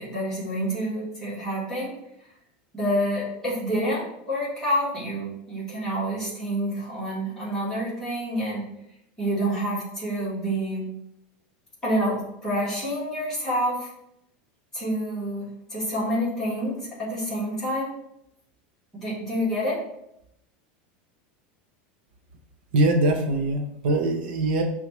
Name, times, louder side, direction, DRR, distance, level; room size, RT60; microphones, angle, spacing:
voice 1, 0.0-1.9 2.7-8.7 9.2-10.9 11.8-13.9 14.7-17.9 19.0-19.8, equal, 10° left, -8 dB, 1.3 m, -28 dB
voice 2, 22.7-24.6, right 2 dB, 90° right, 4 dB, 0.6 m, -22 dB
5.7 x 2.3 x 3.0 m, 0.78 s
supercardioid pair, 180°, 5 cm